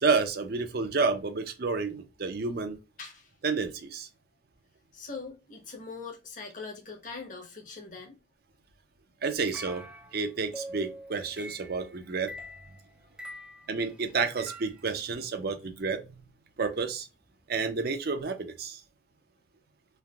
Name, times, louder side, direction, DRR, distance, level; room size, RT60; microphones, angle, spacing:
voice 1, 0.0-2.8 3.4-4.1 9.2-9.9 10.1-12.3 13.7-16.2 16.6-17.1 17.5-18.8, right 4 dB, 55° right, 0.6 m, -30 dB
voice 2, 3.0-3.3 4.9-8.2, left 4 dB, 45° left, 1.1 m, -42 dB
sound 1, 9.5-15.0, equal, 5° right, 0.3 m, -44 dB
3.2 x 2.5 x 2.3 m
head